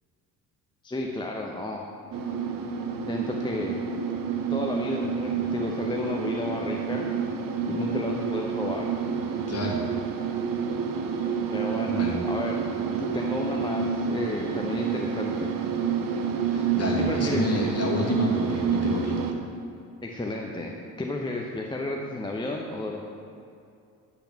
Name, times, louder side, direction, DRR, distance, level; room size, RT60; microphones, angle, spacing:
voice 1, 0.8-1.8 3.1-3.8 4.5-7.1 7.7-8.9 11.5-12.6 13.0-15.5 17.0-17.4 20.0-23.0, left 2 dB, 10° left, -1 dB, 0.7 m, -32 dB
sound 1, 2.1-19.3, right 6 dB, 45° right, 0.9 m, -29 dB
voice 2, 9.5-9.8 11.8-12.2 16.5-19.2, left 2 dB, 30° left, -1 dB, 1.9 m, -29 dB
10.5 x 3.9 x 5.9 m, 2.5 s
hypercardioid pair, 50°, 46 cm